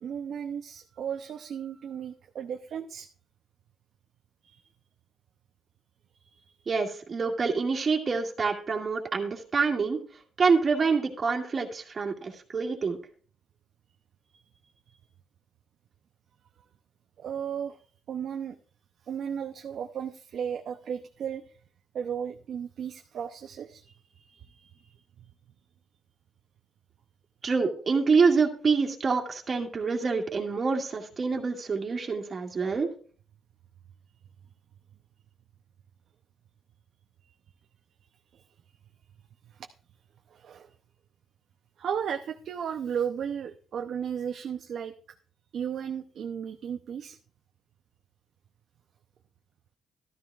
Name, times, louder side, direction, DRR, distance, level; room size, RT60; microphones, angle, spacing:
voice 1, 0.0-3.1 4.4-4.7 6.2-6.4 14.3-14.4 14.9-15.0 17.2-17.8 18.1-18.6 19.1-21.4 21.9-25.0 38.3-38.4 39.5-39.7 40.3-40.7 41.8-44.9 45.5-47.2, right 8 dB, 65° right, 5 dB, 0.6 m, -35 dB
voice 2, 6.7-10.0 10.4-13.0 27.4-32.9, right 4 dB, 40° right, 1 dB, 2.2 m, -26 dB
13.0 x 13.0 x 2.4 m, 0.42 s
cardioid pair, 90°, 0 cm